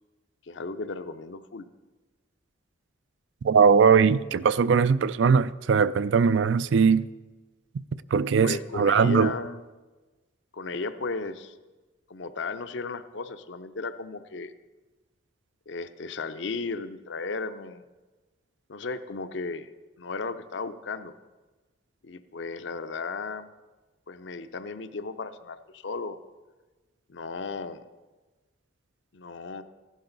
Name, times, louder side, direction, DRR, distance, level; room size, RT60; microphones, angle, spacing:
voice 1, 0.4-1.7 8.4-9.6 10.5-11.5 12.1-14.5 15.7-17.8 18.7-19.7 20.0-21.1 22.0-23.5 24.1-26.2 27.1-27.8 29.1-29.6, left 4 dB, 65° left, 0.6 m, -35 dB
voice 2, 3.4-7.1 8.1-9.3, right 6 dB, 70° right, 0.4 m, -20 dB
15.0 x 11.5 x 4.0 m
head